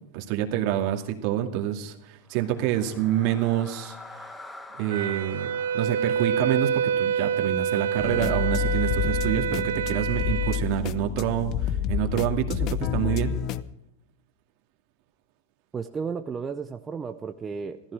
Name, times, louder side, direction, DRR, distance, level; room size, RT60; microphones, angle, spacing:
voice 1, 0.1-4.0 4.7-13.4, right 11 dB, 50° right, 4 dB, 2.3 m, -27 dB
sound 1, 2.2-8.4, left 2 dB, 10° left, 1.2 m, -47 dB
Wind instrument woodwind instrument, 4.9-10.6, right 8 dB, 85° right, 0.6 m, -27 dB
sound 2, 8.0-13.6, left 10 dB, 40° left, 0.7 m, -28 dB
voice 2, 15.7-17.9, right 5 dB, 15° right, 7 dB, 0.7 m, -33 dB
16.5 x 14.5 x 4.9 m, 0.81 s
supercardioid pair, 135°, 0 cm